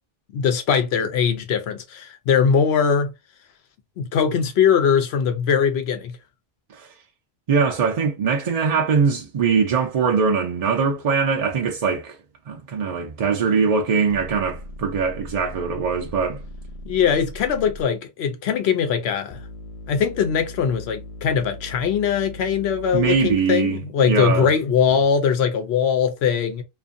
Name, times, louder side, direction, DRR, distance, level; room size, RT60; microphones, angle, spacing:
voice 1, 0.3-3.1 4.0-6.2 16.8-19.4 19.9-26.6, left 7 dB, 90° left, 0.9 m, -21 dB
voice 2, 7.5-12.2 12.5-16.4 22.9-24.5, right 5 dB, 50° right, 0.5 m, -22 dB
sound 1, 14.1-17.9 19.3-23.5 24.9-25.0, left 1 dB, 45° left, 0.6 m, -39 dB
2.5 x 2.4 x 2.5 m
omnidirectional pair, 1.0 m